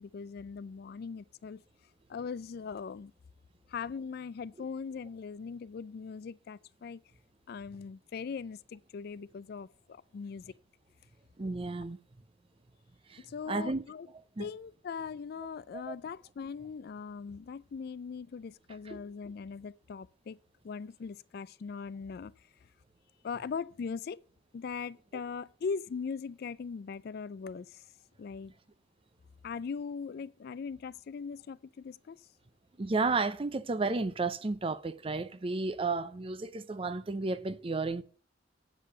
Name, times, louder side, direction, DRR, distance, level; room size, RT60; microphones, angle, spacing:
voice 1, 0.0-1.6 2.1-3.1 3.7-7.0 7.5-10.5 13.2-14.1 14.4-20.4 20.6-22.3 23.2-24.2 24.5-27.8 28.2-28.5 29.4-32.2, left 5 dB, 55° left, 0.3 m, -40 dB
voice 2, 11.4-12.0 13.1-13.8 14.4-14.5 15.7-15.9 18.9-19.0 32.8-38.0, right 3 dB, 30° right, 0.5 m, -32 dB
8.4 x 5.4 x 6.6 m
head